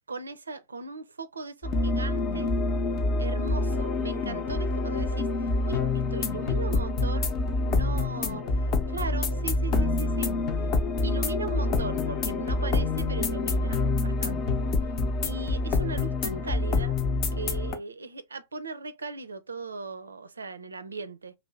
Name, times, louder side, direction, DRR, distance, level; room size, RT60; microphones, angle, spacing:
voice 1, 0.1-2.5 3.2-5.8 6.1-7.3 7.6-10.3 11.0-14.6 15.2-17.0 17.3-21.3, right 3 dB, 75° right, 0.4 m, -38 dB
sound 1, 1.6-17.8, left 3 dB, 40° left, 0.7 m, -27 dB
2.8 x 2.7 x 3.1 m
figure-of-eight pair, 90°, 0 cm